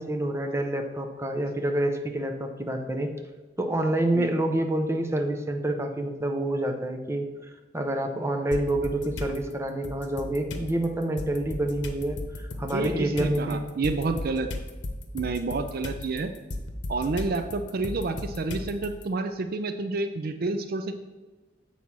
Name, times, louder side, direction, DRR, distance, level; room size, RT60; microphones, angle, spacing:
voice 1, 0.0-3.1 3.6-7.3 7.7-13.6, right 1 dB, 15° right, 4 dB, 0.7 m, -27 dB
sound 1, 8.5-9.4 9.8-19.0, left 1 dB, 85° left, 0.9 m, -36 dB
voice 2, 12.7-14.5 15.1-16.3 16.9-20.9, right 3 dB, 55° right, 8 dB, 0.5 m, -29 dB
7.6 x 4.2 x 6.0 m, 1.2 s
head